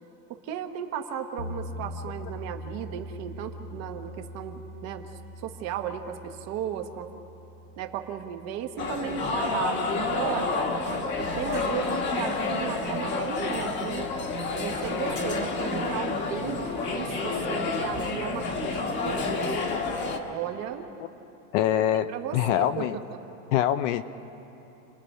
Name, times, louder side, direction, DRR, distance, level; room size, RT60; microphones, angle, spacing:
voice 1, 0.3-5.1 5.4-7.1 7.8-10.7 11.1-14.0 14.5-19.3 20.3-20.9 22.1-23.2, right 9 dB, 35° right, 6 dB, 1.1 m, -35 dB
sound 1, 1.4-11.4, left 1 dB, 80° left, 2.5 m, -43 dB
sound 2, 8.8-20.2, left 3 dB, 25° left, 1.4 m, -29 dB
voice 2, 21.5-23.0 23.5-24.0, left 11 dB, 50° left, 12 dB, 0.7 m, -24 dB
29.5 x 20.5 x 5.5 m, 3.0 s
supercardioid pair, 175°, 46 cm